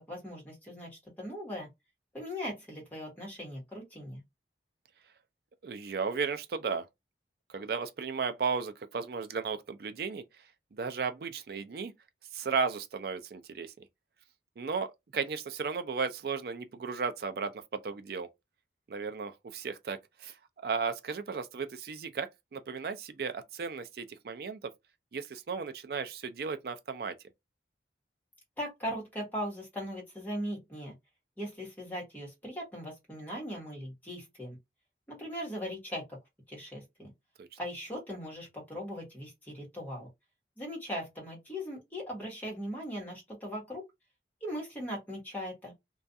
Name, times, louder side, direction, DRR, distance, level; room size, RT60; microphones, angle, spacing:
voice 1, 0.0-1.7 2.1-4.2 28.6-30.9 31.4-34.6 35.1-36.2 36.5-37.1 37.6-40.1 40.6-43.8 44.4-45.7, equal, 10° left, 1.1 m, -39 dB
voice 2, 5.6-6.9 7.5-10.2 10.7-11.9 12.3-13.7 14.6-18.3 18.9-20.4 20.6-22.3 22.5-24.7 25.1-27.2 37.4-37.5, right 5 dB, 55° right, 0.4 m, -35 dB
2.4 x 2.3 x 2.6 m
head